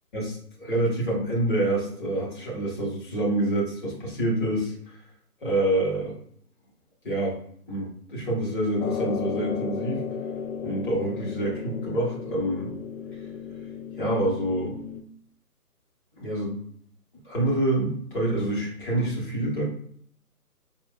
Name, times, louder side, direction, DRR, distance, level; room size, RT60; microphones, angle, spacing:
voice 1, 0.1-4.7 5.4-6.2 7.0-7.4 7.7-10.1 10.6-12.7 14.0-14.8 16.2-16.6 17.2-19.6, right 1 dB, 30° left, -4 dB, 1.2 m, -27 dB
sound 1, 8.8-15.0, left 7 dB, 60° left, 0.5 m, -34 dB
5.1 x 2.5 x 2.3 m, 0.63 s
figure-of-eight pair, 145°, 48 cm